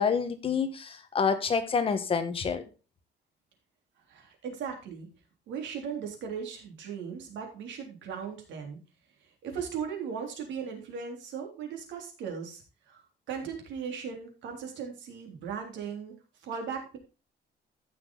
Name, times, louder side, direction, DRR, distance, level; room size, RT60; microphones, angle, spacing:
voice 1, 0.0-2.6, left 6 dB, 30° left, 9 dB, 1.3 m, -28 dB
voice 2, 4.1-5.1 5.5-8.8 9.4-13.0 13.3-16.2 16.4-17.0, right 6 dB, 90° right, 3 dB, 3.5 m, -37 dB
14.5 x 6.2 x 3.8 m, 0.32 s
cardioid pair, 170°, 18 cm